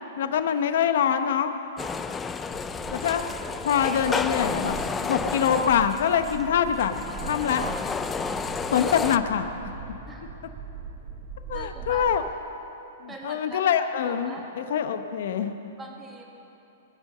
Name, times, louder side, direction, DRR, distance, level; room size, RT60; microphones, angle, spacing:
voice 1, 0.2-1.5 2.9-3.3 3.6-4.8 5.0-7.7 8.7-9.4 11.5-12.2 13.2-15.6, left 8 dB, 65° left, 9 dB, 0.9 m, -24 dB
sound 1, 1.8-9.2, left 5 dB, 10° left, 0.4 m, -31 dB
sound 2, 2.5-12.2, right 5 dB, 25° right, 1.5 m, -41 dB
voice 2, 8.2-8.6 10.1-10.4 11.5-12.1 13.1-13.6 14.0-14.5 15.8-16.3, right 2 dB, 10° right, -1 dB, 1.8 m, -43 dB
21.0 x 8.3 x 6.7 m, 3.0 s
hypercardioid pair, 155°, 0 cm